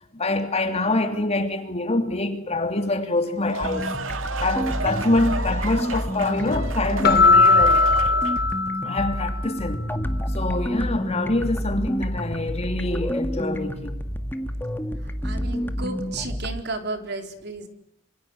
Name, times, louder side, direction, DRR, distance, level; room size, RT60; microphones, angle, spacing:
voice 1, 0.1-3.9 4.4-7.8 8.8-9.8 10.3-14.0, left 2 dB, 35° left, 3.0 m, -25 dB
sound 1, 3.2-8.6, right 3 dB, 85° right, 2.1 m, -32 dB
sound 2, 3.6-16.6, equal, 10° left, 1.9 m, -29 dB
Keyboard (musical), 7.0-9.4, left 4 dB, 55° left, 1.2 m, -18 dB
voice 2, 9.3-9.7 15.2-17.7, right 3 dB, 55° right, 4.0 m, -33 dB
27.5 x 27.0 x 8.1 m
head